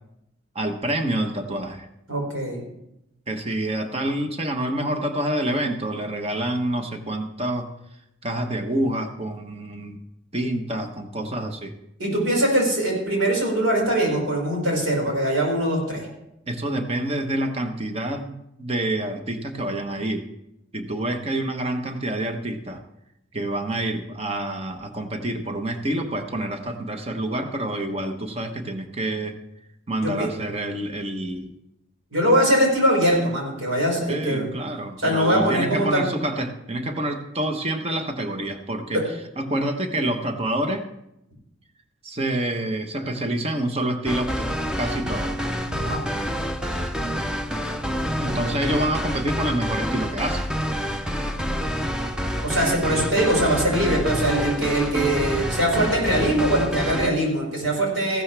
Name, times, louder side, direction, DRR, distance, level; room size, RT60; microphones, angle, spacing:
voice 1, 0.5-1.9 3.3-7.7 8.2-10.0 10.3-11.7 16.5-18.3 18.6-20.2 20.7-22.8 23.3-29.4 29.9-31.6 34.1-39.0 39.4-40.9 42.0-44.5 44.8-45.3 48.2-50.5, right 1 dB, 30° right, 5 dB, 1.1 m, -27 dB
voice 2, 2.1-2.6 12.0-16.1 30.0-30.3 32.1-34.5 35.0-36.0 38.9-39.0 45.6-46.0 52.4-58.2, right 1 dB, 85° right, -2 dB, 5.3 m, -22 dB
sound 1, 44.0-57.1, equal, 5° right, 0.6 m, -27 dB
15.5 x 12.0 x 3.4 m, 0.84 s
head